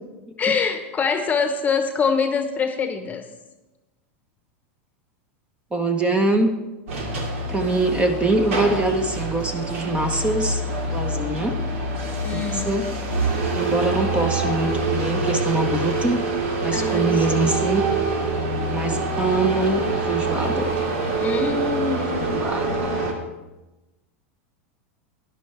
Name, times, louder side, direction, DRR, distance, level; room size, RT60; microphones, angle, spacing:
voice 1, 0.4-3.2 12.2-12.8 16.7-17.5 21.1-22.2, left 5 dB, 25° left, 7 dB, 1.1 m, -24 dB
voice 2, 5.7-6.5 7.5-10.6 10.9-11.6 12.3-12.9 13.5-16.2 16.6-17.9 18.7-20.7 22.1-23.0, right 2 dB, 15° right, 6 dB, 1.1 m, -23 dB
sound 1, 6.9-23.1, right 3 dB, 80° right, 2.3 m, -25 dB
12.0 x 11.0 x 3.4 m, 1.1 s
supercardioid pair, 120°, 7 cm